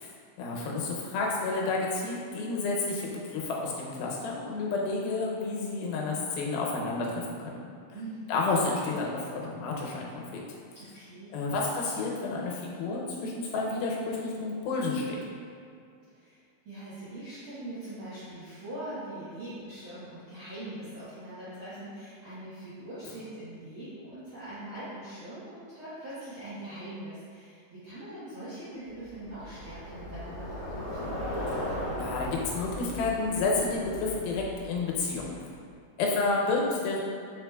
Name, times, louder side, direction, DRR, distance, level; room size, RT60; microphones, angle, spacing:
voice 1, 0.4-7.6 8.3-10.4 11.3-15.2 31.5-31.7 32.0-35.3 36.0-37.0, left 3 dB, 90° left, -2 dB, 2.6 m, -30 dB
voice 2, 7.9-8.4 10.7-11.4 16.1-16.4 16.6-31.2, right 1 dB, 75° right, -13 dB, 1.2 m, -42 dB
Bicycle, 29.0-35.5, left 1 dB, 70° left, 1.5 m, -37 dB
4.8 x 4.7 x 2.2 m, 2.3 s
omnidirectional pair, 4.1 m